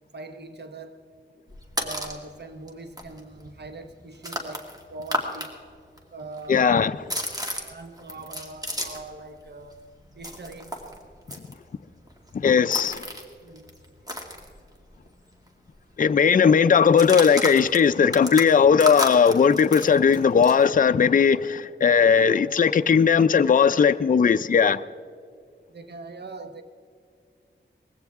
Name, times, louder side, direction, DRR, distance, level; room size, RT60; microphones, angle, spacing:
voice 1, 0.1-1.1 1.8-5.6 6.1-7.2 7.6-10.8 13.4-13.8 25.7-26.6, right 2 dB, 55° right, 1.0 m, -41 dB
sound 1, 1.5-2.2 2.7-2.8 3.0-5.5 5.8-9.2 9.4-15.1 15.4-15.5 15.7-16.1 16.8-20.6, equal, 20° right, 2.2 m, -33 dB
voice 2, 6.5-6.9 12.3-13.1 16.0-24.8, left 6 dB, 45° left, 0.4 m, -18 dB
20.0 x 16.0 x 3.6 m
wide cardioid pair, 85°, 20 cm